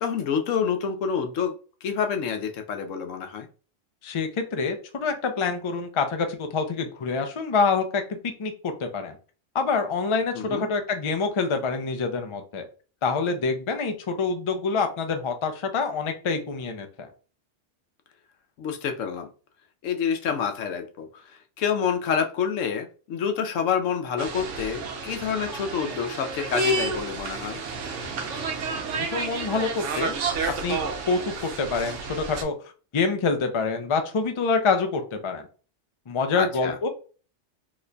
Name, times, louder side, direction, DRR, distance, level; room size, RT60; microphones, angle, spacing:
voice 1, 0.0-1.6 1.8-3.5 10.3-10.7 18.6-19.3 19.8-27.6 36.3-36.7, left 7 dB, 90° left, 6 dB, 1.0 m, -28 dB
voice 2, 4.0-9.2 9.5-12.6 13.0-17.1 28.9-30.1 30.6-30.8 31.1-32.5 32.9-35.5 36.1-36.9, left 4 dB, 55° left, 6 dB, 0.3 m, -26 dB
sound 1, 24.2-32.4, right 3 dB, 80° right, 1.0 m, -30 dB
3.0 x 2.2 x 3.7 m, 0.37 s
omnidirectional pair, 1.3 m